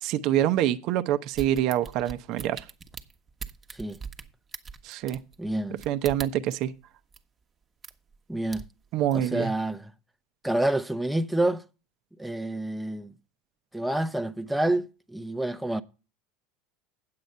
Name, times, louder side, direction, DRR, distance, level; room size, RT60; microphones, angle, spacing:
voice 1, 0.0-2.6 4.8-5.2 5.9-6.7 8.9-9.5, right 12 dB, 55° right, 0.7 m, -26 dB
sound 1, 1.3-6.6 7.1-7.2 7.8-8.2 8.5-9.3 9.7-9.8, right 5 dB, 25° right, 1.1 m, -41 dB
voice 2, 5.4-5.8 8.3-8.6 9.1-9.9 10.4-11.6 12.2-13.1 13.7-14.8 15.1-15.8, right 1 dB, 5° right, 0.7 m, -28 dB
9.1 x 7.7 x 5.4 m
hypercardioid pair, 85°, 0 cm